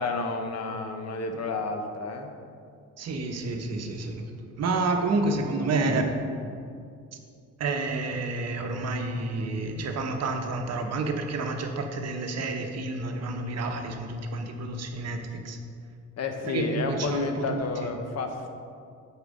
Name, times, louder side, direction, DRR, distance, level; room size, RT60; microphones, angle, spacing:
voice 1, 0.0-2.3 16.2-18.5, left 3 dB, 60° left, 5 dB, 0.9 m, -30 dB
voice 2, 3.0-4.3 4.6-6.1 7.6-15.6 16.4-17.9, right 3 dB, 55° right, 4 dB, 0.8 m, -29 dB
6.8 x 4.6 x 5.2 m, 2.3 s
cardioid pair, 90°, 30 cm